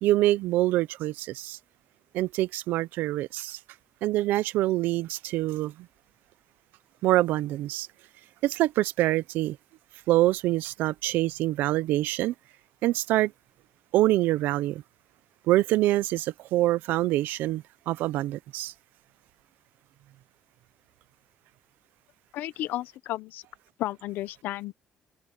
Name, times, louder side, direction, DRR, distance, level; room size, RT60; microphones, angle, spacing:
voice 1, 0.0-1.6 2.1-3.6 4.0-5.9 7.0-7.9 8.4-9.6 10.1-12.3 12.8-13.3 13.9-14.8 15.5-18.7, right 16 dB, 90° right, 0.6 m, -25 dB
voice 2, 22.3-23.4 23.8-24.7, left 15 dB, 85° left, 0.9 m, -33 dB
cardioid pair, 125°, 3 cm